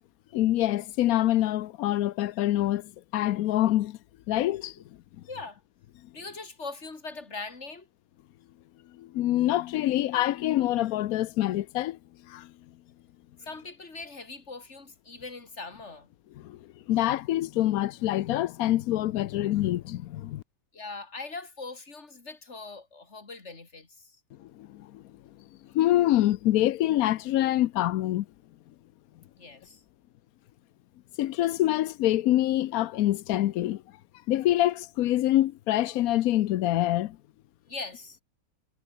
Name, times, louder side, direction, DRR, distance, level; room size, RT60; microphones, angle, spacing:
voice 1, 0.3-4.0 4.3-4.7 8.9-12.0 12.3-12.5 16.4-16.6 16.9-20.4 24.4-25.0 25.7-28.3 31.2-33.8 34.3-37.2, left 14 dB, 75° left, 1.0 m, -25 dB
voice 2, 5.3-5.6 6.1-7.9 13.4-16.1 20.7-24.2 29.4-29.8 37.7-38.2, left 3 dB, 45° left, 3.4 m, -41 dB
omnidirectional pair, 1.6 m